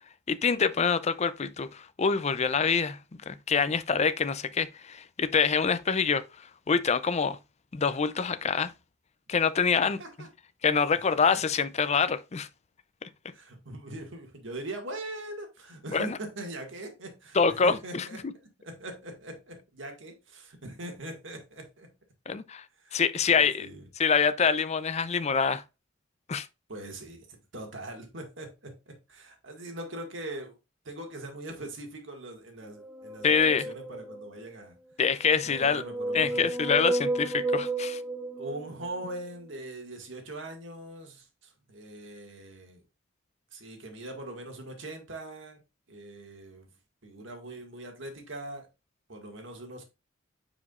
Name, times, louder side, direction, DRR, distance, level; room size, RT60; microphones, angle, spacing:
voice 1, 0.3-3.0 3.3-6.2 6.7-7.4 7.7-8.7 9.3-10.0 10.6-12.5 13.0-13.1 15.9-16.2 17.3-18.1 22.3-22.6 22.9-23.7 24.0-25.6 26.3-26.5 33.2-33.7 35.0-35.8 36.1-38.0, left 5 dB, 35° left, 0.5 m, -25 dB
voice 2, 13.3-18.2 18.6-21.9 22.8-23.8 26.7-30.6 30.8-34.8 35.4-36.5 38.4-42.8 43.5-45.6 45.9-46.7 47.0-48.7 49.1-49.9, right 1 dB, 70° right, 1.9 m, -41 dB
sound 1, 32.8-34.4 35.3-39.1, right 2 dB, 10° right, 0.7 m, -32 dB
9.5 x 5.0 x 2.4 m
head